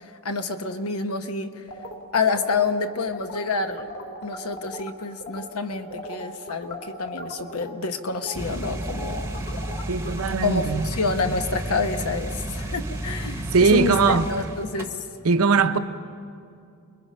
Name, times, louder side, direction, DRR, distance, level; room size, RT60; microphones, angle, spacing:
voice 1, 0.2-1.6 2.1-3.9 4.2-9.3 10.4-15.0, left 4 dB, 80° left, 1.1 m, -28 dB
sound 1, 1.7-4.9 5.2-5.4 5.7-10.5, left 1 dB, 55° left, 2.6 m, -38 dB
sound 2, 8.3-14.8, right 1 dB, 10° right, 1.0 m, -32 dB
voice 2, 9.9-10.9 13.5-14.3 15.2-15.8, right 4 dB, 75° right, 0.9 m, -20 dB
29.0 x 21.5 x 5.5 m
head